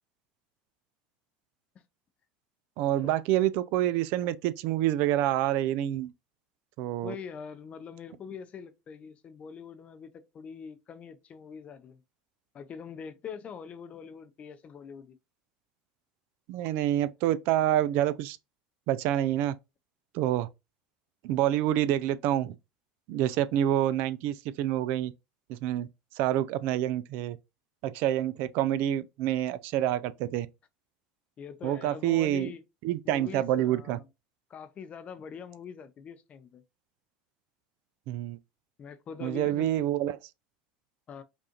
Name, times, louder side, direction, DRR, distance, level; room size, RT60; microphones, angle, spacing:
voice 1, 2.8-6.1 6.8-7.1 16.5-18.4 18.9-19.6 20.1-20.5 21.2-22.5 23.1-25.1 25.5-25.9 26.2-27.4 27.8-30.5 31.6-32.5 32.8-34.0 38.1-38.4 39.2-40.2, right 12 dB, 65° right, 0.4 m, -27 dB
voice 2, 7.0-12.0 12.5-15.2 31.4-32.6 33.0-34.1 34.5-36.6 38.8-39.7 41.1-41.2, left 6 dB, 35° left, 0.5 m, -43 dB
5.1 x 2.4 x 2.9 m
supercardioid pair, 110°, 4 cm